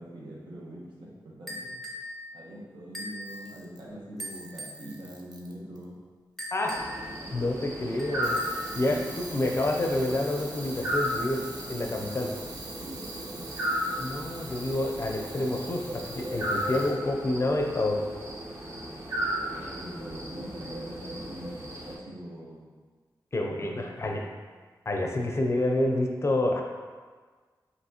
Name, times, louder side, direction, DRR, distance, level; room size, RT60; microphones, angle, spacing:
voice 1, 0.0-1.7 2.3-6.0 8.9-9.1 12.8-13.5 19.5-22.7 23.5-24.4, right 1 dB, 80° right, -5 dB, 1.1 m, -43 dB
sound 1, 1.5-2.1 2.9-3.3 4.2-4.8 6.4-7.1 8.0-8.7, equal, ahead, 0.7 m, -39 dB
Camera, 3.1-3.9 4.3-5.8 8.2-16.9, right 3 dB, 60° right, 0.6 m, -45 dB
voice 2, 6.5-6.8 7.3-8.4 8.7-11.4 11.7-12.3 14.0-18.0 23.3-24.2 24.9-26.6, left 1 dB, 35° left, 1 dB, 0.5 m, -28 dB
sound 2, 6.7-21.9, equal, 40° right, 1.0 m, -35 dB
5.5 x 2.9 x 2.9 m, 1.5 s
wide cardioid pair, 120°, 8 cm